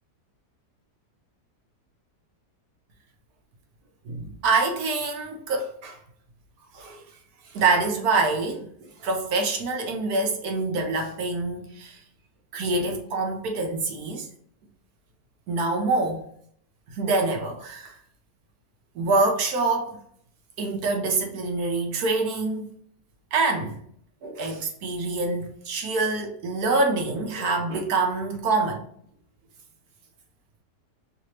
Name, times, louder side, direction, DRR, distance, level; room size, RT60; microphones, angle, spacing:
voice 1, 4.0-6.0 6.7-7.0 7.5-12.0 12.5-14.3 15.5-16.2 16.9-18.0 18.9-20.0 20.6-22.7 23.3-23.8 24.2-28.9, right 3 dB, 70° right, 1.2 m, -26 dB
3.3 x 3.0 x 2.8 m
omnidirectional pair, 1.8 m